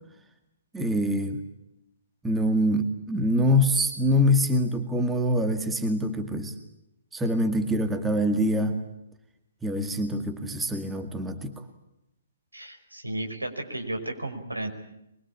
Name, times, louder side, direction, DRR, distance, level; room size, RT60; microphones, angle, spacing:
voice 1, 0.7-1.4 2.2-6.5 7.1-8.8 9.6-11.5, equal, 5° right, 6 dB, 2.0 m, -24 dB
voice 2, 12.5-14.7, right 1 dB, 85° right, 4 dB, 5.2 m, -33 dB
24.0 x 22.5 x 8.7 m, 0.83 s
figure-of-eight pair, 130°, 0 cm